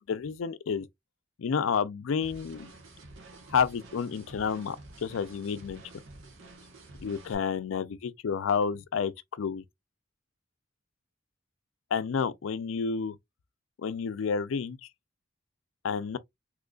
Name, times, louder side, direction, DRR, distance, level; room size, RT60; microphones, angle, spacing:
voice 1, 0.1-0.9 1.4-2.7 3.5-5.8 7.0-9.6 11.9-13.2 13.8-14.9 15.8-16.2, left 6 dB, 90° left, 0.4 m, -30 dB
sound 1, 2.2-7.3, right 2 dB, 80° right, 1.2 m, -50 dB
3.7 x 3.0 x 2.3 m
head